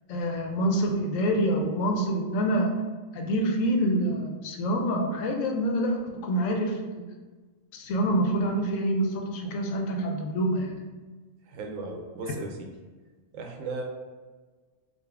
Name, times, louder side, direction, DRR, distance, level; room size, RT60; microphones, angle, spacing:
voice 1, 0.1-2.7 3.1-7.1 7.7-10.8, right 1 dB, 80° left, 2 dB, 1.0 m, -26 dB
voice 2, 11.5-12.7 13.3-13.8, right 3 dB, 80° right, 2 dB, 1.0 m, -36 dB
3.8 x 2.3 x 3.3 m, 1.4 s
omnidirectional pair, 1.4 m